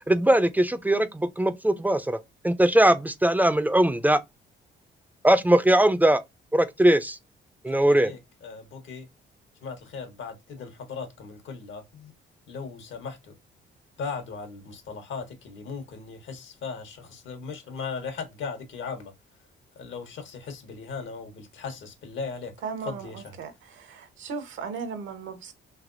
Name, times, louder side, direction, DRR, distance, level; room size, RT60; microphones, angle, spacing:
voice 1, 0.1-2.2 2.4-4.2 5.2-6.2 6.5-7.2 7.6-8.1, right 1 dB, 10° right, 0.4 m, -20 dB
voice 2, 7.7-9.1 9.6-12.1 12.5-13.3 14.0-19.1 19.7-22.5 22.8-23.4, left 5 dB, 75° left, 1.1 m, -38 dB
voice 3, 22.6-23.1 23.4-23.5 23.8-25.5, right 5 dB, 75° right, 0.9 m, -36 dB
3.3 x 2.9 x 2.5 m
cardioid pair, 90°, 20 cm